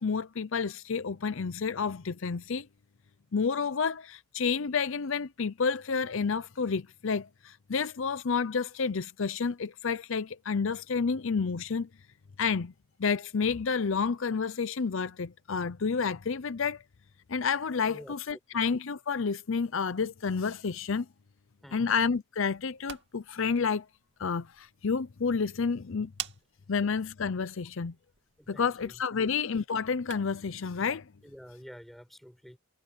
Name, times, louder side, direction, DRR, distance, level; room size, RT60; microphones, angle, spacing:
voice 1, 0.0-2.7 3.3-11.9 12.4-12.7 13.0-16.8 17.3-21.1 21.7-23.9 24.2-26.1 26.7-27.9 28.5-31.0, left 5 dB, 60° left, 0.6 m, -30 dB
voice 2, 21.6-21.9 26.0-26.1 28.4-29.3 31.2-32.6, equal, ahead, 5.6 m, -49 dB
sound 1, 22.6-30.5, right 10 dB, 50° right, 2.6 m, -48 dB
head